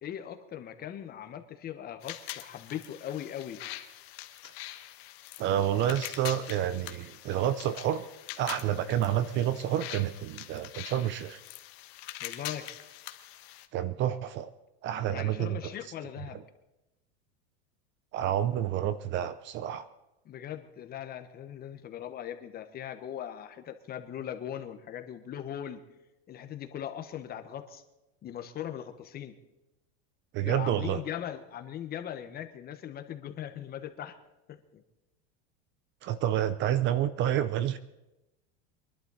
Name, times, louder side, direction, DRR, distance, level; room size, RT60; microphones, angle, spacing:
voice 1, 0.0-3.6 12.2-12.7 15.1-16.4 20.2-25.8 26.3-27.8 28.2-29.3 30.4-34.2 34.5-34.8, left 10 dB, 30° left, 8 dB, 1.2 m, -39 dB
sound 1, 2.0-13.7, left 15 dB, 70° left, 1.3 m, -44 dB
voice 2, 5.4-8.1 8.4-11.4 13.7-14.5 14.8-15.7 18.1-19.9 30.3-31.0 36.0-37.8, right 11 dB, 35° right, 15 dB, 0.6 m, -29 dB
23.5 x 11.5 x 4.1 m, 0.98 s
supercardioid pair, 140°, 32 cm